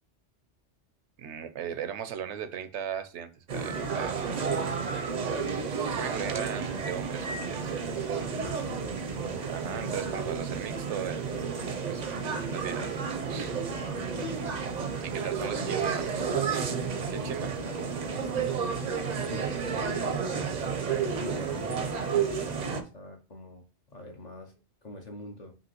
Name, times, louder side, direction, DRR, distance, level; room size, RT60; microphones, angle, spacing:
voice 1, 1.2-4.2 4.5-4.7 5.6-7.7 9.5-11.4 11.9-13.0 13.3-13.5 15.0-16.2 17.1-17.5, right 8 dB, 80° right, 11 dB, 0.9 m, -38 dB
sound 1, 3.5-22.8, right 6 dB, 50° right, 0.6 m, -31 dB
voice 2, 4.3-4.8 8.4-9.3 13.5-14.1 17.1-20.2 20.9-24.5 24.8-25.5, left 2 dB, 45° left, 3 dB, 0.6 m, -45 dB
5.4 x 2.8 x 2.9 m, 0.33 s
omnidirectional pair, 1.2 m